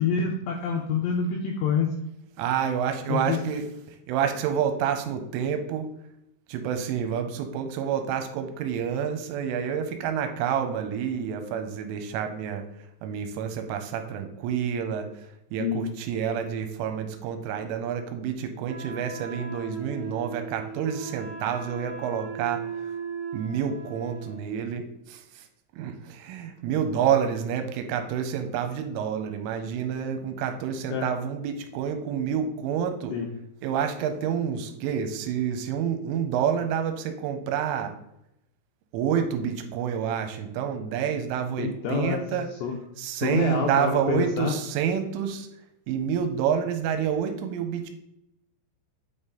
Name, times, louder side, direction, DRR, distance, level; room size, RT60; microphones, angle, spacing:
voice 1, 0.0-1.9 3.1-3.4 15.6-15.8 30.9-31.1 33.1-33.3 41.6-42.2 42.6-42.7 43.1-44.5, left 6 dB, 85° left, 0 dB, 2.5 m, -27 dB
voice 2, 2.4-5.9 6.5-12.6 13.0-15.1 15.5-22.9 23.3-25.5 25.8-33.1 33.6-37.9 38.9-42.5 43.0-45.5 45.9-47.9, right 8 dB, 85° right, 7 dB, 3.1 m, -28 dB
Wind instrument woodwind instrument, 18.7-24.6, right 4 dB, 60° right, 3.2 m, -38 dB
8.4 x 4.0 x 3.8 m, 0.83 s
omnidirectional pair, 5.9 m